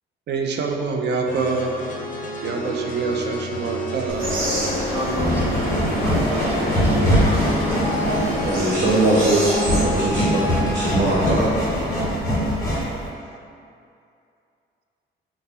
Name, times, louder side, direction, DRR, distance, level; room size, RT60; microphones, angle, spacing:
voice 1, 0.3-1.8 2.4-4.3, right 4 dB, 60° right, 2 dB, 0.4 m, -26 dB
sound 1, 1.3-11.0, equal, 40° left, 0.5 m, -29 dB
sound 2, 4.1-13.1, equal, 15° left, 1.0 m, -23 dB
sound 3, 4.2-9.8, equal, 85° right, 0.7 m, -27 dB
voice 2, 4.8-5.7 6.0-7.9, equal, 10° right, -3 dB, 0.6 m, -31 dB
voice 3, 8.4-10.4 10.7-11.5, right 2 dB, 40° right, -9 dB, 0.8 m, -20 dB
3.3 x 2.0 x 4.1 m, 2.5 s
cardioid pair, 90°, 20 cm